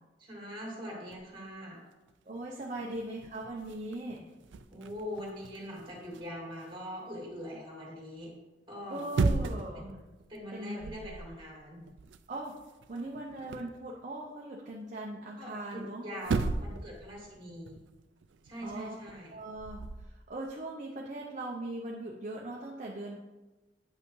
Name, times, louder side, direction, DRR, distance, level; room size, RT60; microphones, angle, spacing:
voice 1, 0.2-1.8 2.8-2.9 4.7-8.3 8.7-9.0 9.7-10.0 10.3-11.9 15.4-17.8 18.4-19.3, equal, 25° right, -2 dB, 2.2 m, -42 dB
sound 1, 1.1-1.5 2.1-2.2 2.4-6.7 8.8-9.8 10.2-10.4 10.8-11.3 11.6-13.8 15.8-15.9 16.2-16.9 17.2-20.1, right 3 dB, 90° right, 0.4 m, -36 dB
voice 2, 2.3-4.3 8.9-9.9 10.5-11.0 12.3-12.6 12.9-16.0 18.6-18.9 19.3-23.2, right 1 dB, 45° right, -2 dB, 0.7 m, -40 dB
8.9 x 5.6 x 3.2 m, 1.1 s
head